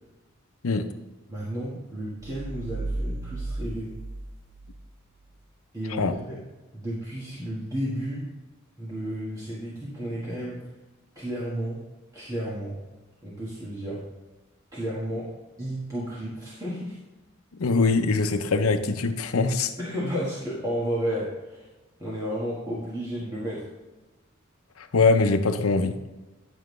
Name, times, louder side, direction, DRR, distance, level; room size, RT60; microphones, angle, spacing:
voice 1, 1.3-3.9 5.7-6.4 6.7-8.3 8.8-10.6 11.1-11.8 12.1-12.8 13.2-14.0 14.7-15.3 15.6-17.0 19.8-21.7 22.0-23.7, equal, 15° right, -8 dB, 1.5 m, -32 dB
sound 1, 2.2-4.8, right 2 dB, 55° right, 1.1 m, -34 dB
voice 2, 17.6-19.7 24.8-26.0, left 3 dB, 85° left, 9 dB, 0.7 m, -22 dB
10.0 x 7.3 x 3.2 m, 1.1 s
head